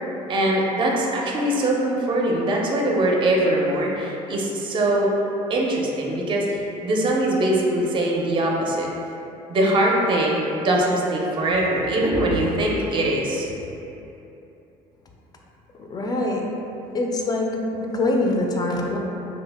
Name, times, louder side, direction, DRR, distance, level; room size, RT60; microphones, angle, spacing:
voice 1, 0.3-5.1 5.5-8.9 9.5-13.5, right 1 dB, 35° right, -2 dB, 0.4 m, -22 dB
voice 2, 15.8-16.6 16.9-19.0, left 2 dB, 25° left, 0 dB, 0.3 m, -24 dB
2.8 x 2.0 x 3.3 m, 2.9 s
cardioid pair, 100°, 14 cm